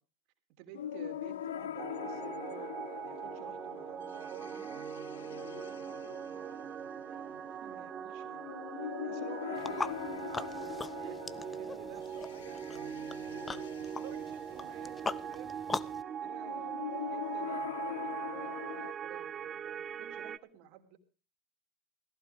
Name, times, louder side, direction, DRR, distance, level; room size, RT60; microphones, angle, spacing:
voice 1, 0.6-2.7 3.0-4.8 5.1-6.6 7.0-8.5 8.8-15.5 16.1-21.0, right 10 dB, 60° right, 6 dB, 2.9 m, -53 dB
sound 1, 0.7-18.9, left 10 dB, 85° left, 0.7 m, -43 dB
sound 2, 1.8-20.4, right 8 dB, 35° right, 0.7 m, -41 dB
sound 3, 9.6-16.0, left 4 dB, 15° left, 0.8 m, -41 dB
17.5 x 15.5 x 3.6 m, 0.35 s
hypercardioid pair, 95°, 0 cm